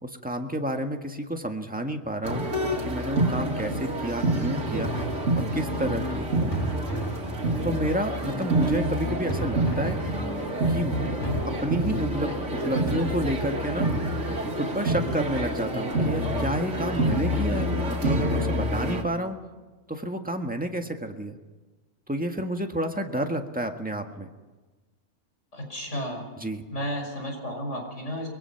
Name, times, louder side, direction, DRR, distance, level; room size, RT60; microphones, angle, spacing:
voice 1, 0.0-2.4 2.8-4.9 5.3-6.3 7.6-10.0 10.7-10.9 11.6-13.9 14.5-19.4 19.9-21.4 22.1-24.3 26.4-26.6, right 1 dB, 5° right, 4 dB, 1.6 m, -30 dB
sound 1, 2.2-19.0, right 1 dB, 65° right, 2.9 m, -27 dB
sound 2, 4.7-5.9 6.5-7.9 9.3-10.7 11.2-11.4, right 2 dB, 20° left, 2.9 m, -34 dB
voice 2, 10.9-11.4 25.5-26.3 26.7-28.3, equal, 65° left, 2 dB, 6.2 m, -32 dB
23.5 x 22.5 x 5.9 m, 1.3 s
omnidirectional pair, 1.3 m